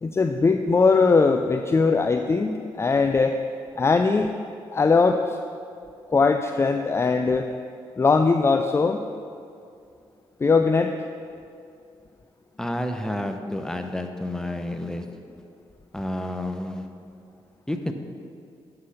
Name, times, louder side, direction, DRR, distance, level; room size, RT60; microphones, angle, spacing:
voice 1, 0.0-3.4 3.8-4.3 4.7-5.4 6.1-7.5 8.0-9.0 10.4-10.9, left 4 dB, 25° left, 6 dB, 0.4 m, -20 dB
voice 2, 12.6-15.0 15.9-16.9 17.7-17.9, left 1 dB, 5° left, 6 dB, 0.8 m, -30 dB
9.5 x 4.0 x 5.6 m, 2.4 s
supercardioid pair, 55°, 10 cm